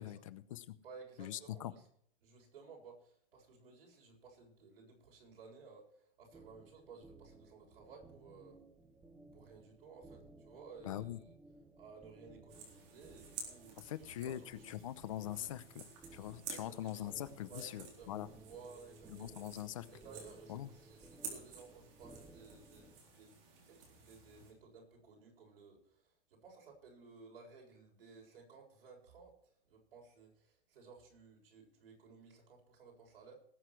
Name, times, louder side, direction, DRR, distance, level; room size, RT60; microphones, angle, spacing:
voice 1, 0.0-0.8 1.2-1.7 10.8-11.2 13.8-18.3 19.1-19.9 20.5-20.7, left 13 dB, 35° left, 14 dB, 0.8 m, -43 dB
voice 2, 0.8-1.8 2.2-8.6 9.3-11.1 11.8-14.9 16.5-17.1 17.5-19.4 19.9-33.4, right 5 dB, 80° right, 0 dB, 7.3 m, -57 dB
sound 1, 6.3-23.0, right 2 dB, 5° right, 0.6 m, -59 dB
sound 2, 12.5-24.5, right 5 dB, 35° right, 4.0 m, -52 dB
19.5 x 8.1 x 4.6 m, 0.66 s
supercardioid pair, 180°, 29 cm